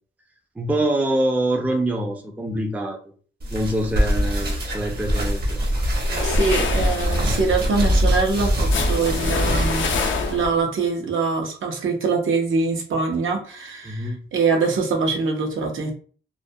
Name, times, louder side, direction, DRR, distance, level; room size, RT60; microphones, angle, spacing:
voice 1, 0.6-3.0 3.5-5.6 13.8-14.2, right 1 dB, 10° right, 2 dB, 0.4 m, -25 dB
sound 1, 3.4-10.5, equal, 55° right, 0.8 m, -23 dB
sound 2, 6.0-10.7, left 5 dB, 75° left, 0.4 m, -28 dB
voice 2, 6.2-9.9 10.3-15.9, right 4 dB, 85° right, 0 dB, 0.7 m, -23 dB
2.4 x 2.2 x 2.6 m, 0.42 s
wide cardioid pair, 110°, 20 cm